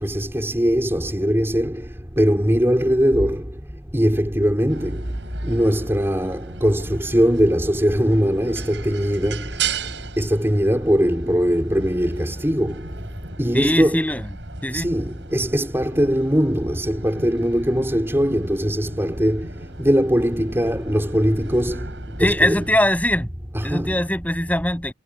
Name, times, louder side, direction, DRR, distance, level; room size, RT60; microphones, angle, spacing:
voice 1, 0.0-1.8 2.2-3.4 3.9-5.0 5.4-9.4 10.2-12.8 13.4-14.0 14.7-19.5 19.8-21.8 22.2-22.6 23.5-24.0, equal, 15° right, 3.9 m, -20 dB
sound 1, 4.7-22.7, right 4 dB, 75° right, 6.1 m, -36 dB
voice 2, 13.5-14.2 14.6-14.9 22.2-23.3 23.6-24.9, left 1 dB, 10° left, 6.5 m, -21 dB
head